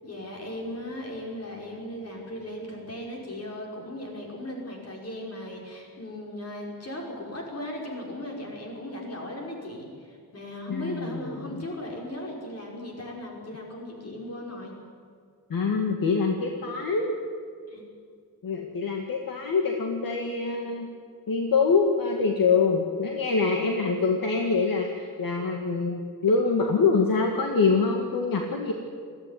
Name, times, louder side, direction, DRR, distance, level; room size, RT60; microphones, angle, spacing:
voice 1, 0.0-14.7 17.7-17.8, left 1 dB, 40° left, -1 dB, 5.5 m, -37 dB
voice 2, 10.7-11.7 15.5-17.1 18.4-20.9 21.3-28.7, left 4 dB, 65° left, 2 dB, 2.0 m, -25 dB
21.5 x 15.0 x 9.9 m, 2.2 s
wide cardioid pair, 160°, 37 cm